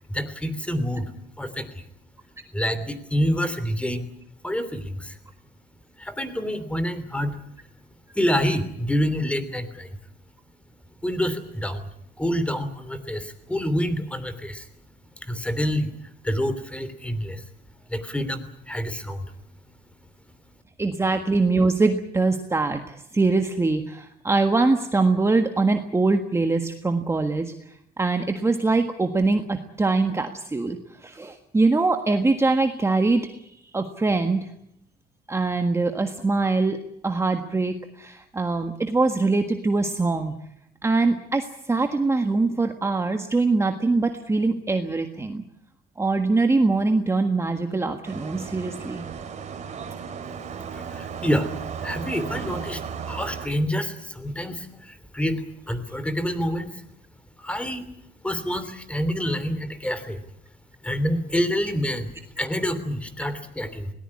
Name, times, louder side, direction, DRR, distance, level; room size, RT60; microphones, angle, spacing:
voice 1, 0.1-1.8 2.5-4.1 4.4-5.2 6.0-7.4 8.1-10.0 11.0-11.9 12.2-14.7 15.2-17.4 17.9-19.3 50.7-56.8 57.4-57.9 58.2-60.2 60.8-63.9, equal, 5° left, 12 dB, 3.1 m, -27 dB
voice 2, 20.8-22.8 23.1-33.4 33.7-34.5 35.3-40.3 40.8-45.4 46.0-49.1, right 3 dB, 15° right, 6 dB, 1.6 m, -23 dB
sound 1, 48.0-53.5, right 7 dB, 45° right, 3.0 m, -35 dB
20.5 x 19.0 x 9.8 m, 0.77 s
cardioid pair, 110°, 17 cm